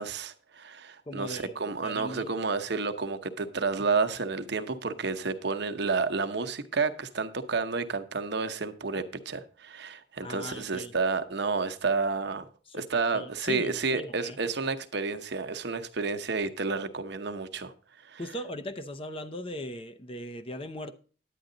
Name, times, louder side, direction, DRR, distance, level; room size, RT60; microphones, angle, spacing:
voice 1, 0.0-12.5 12.7-17.7 18.0-18.2, right 4 dB, 60° right, 0.9 m, -30 dB
voice 2, 1.1-2.3 8.9-9.1 10.2-10.9 12.7-14.4 18.2-20.9, left 1 dB, 30° left, 0.7 m, -39 dB
10.0 x 9.3 x 3.9 m
head